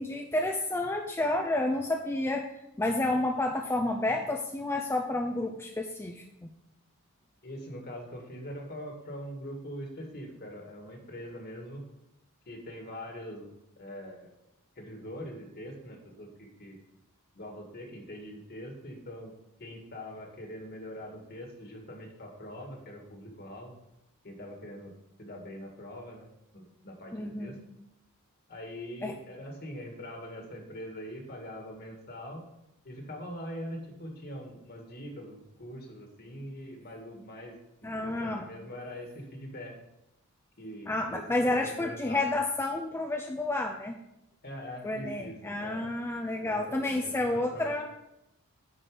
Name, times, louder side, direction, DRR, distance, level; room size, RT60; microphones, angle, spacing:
voice 1, 0.0-6.5 27.1-27.6 29.0-29.2 37.8-38.5 40.9-44.0 44.8-47.9, left 2 dB, 10° left, 3 dB, 0.5 m, -30 dB
voice 2, 7.4-11.8 12.5-14.3 14.8-16.8 17.3-19.3 19.6-23.7 24.2-24.9 25.2-26.3 26.5-27.6 28.5-32.4 32.8-39.7 40.6-42.3 44.4-45.8 46.4-47.9, equal, 45° left, 2 dB, 1.9 m, -43 dB
10.0 x 4.5 x 4.9 m, 0.85 s
head